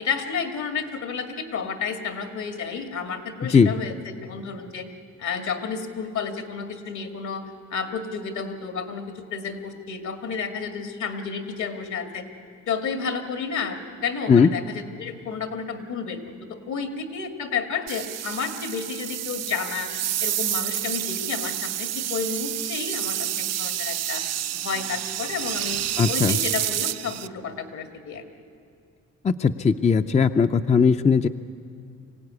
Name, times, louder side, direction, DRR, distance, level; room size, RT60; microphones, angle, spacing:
voice 1, 0.0-3.9 4.2-4.9 5.2-7.4 7.7-12.2 12.7-16.2 16.5-19.9 20.2-24.2 24.5-25.8 26.1-28.3, left 5 dB, 70° left, 6 dB, 2.2 m, -31 dB
sound 1, 17.9-27.3, right 12 dB, 60° right, 0.6 m, -29 dB
voice 2, 26.0-26.4 29.2-31.3, left 5 dB, 25° left, 9 dB, 0.5 m, -18 dB
24.5 x 16.5 x 9.6 m, 2.3 s
cardioid pair, 90°, 30 cm